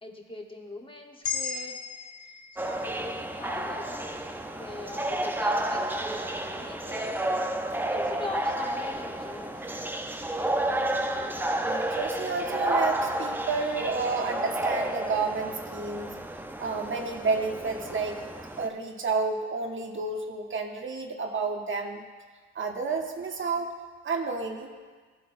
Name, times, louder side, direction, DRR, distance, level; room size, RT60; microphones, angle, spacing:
voice 1, 0.0-1.8 2.6-4.0 4.6-7.6 7.9-9.7, left 2 dB, 15° left, 1 dB, 1.1 m, -41 dB
sound 1, 1.2-5.5, left 6 dB, 65° left, 1.4 m, -38 dB
sound 2, 2.6-18.7, right 1 dB, 5° right, 0.6 m, -31 dB
voice 2, 11.6-16.1 16.6-18.2 18.6-22.0 22.5-23.7 24.0-24.7, right 4 dB, 40° right, 3 dB, 0.9 m, -30 dB
14.5 x 8.0 x 2.6 m, 1.5 s
cardioid pair, 90°, 30 cm